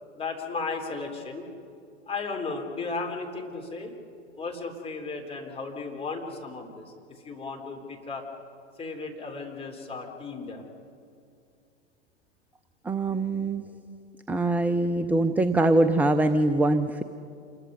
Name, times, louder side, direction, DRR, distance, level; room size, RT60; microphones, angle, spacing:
voice 1, 0.1-1.4 2.1-3.9 4.3-8.3 8.8-10.6, left 4 dB, 15° left, 1 dB, 3.7 m, -35 dB
voice 2, 12.9-13.6 14.3-17.0, right 2 dB, 5° right, 10 dB, 0.5 m, -23 dB
28.0 x 21.5 x 5.5 m, 2.4 s
hypercardioid pair, 105°, 36 cm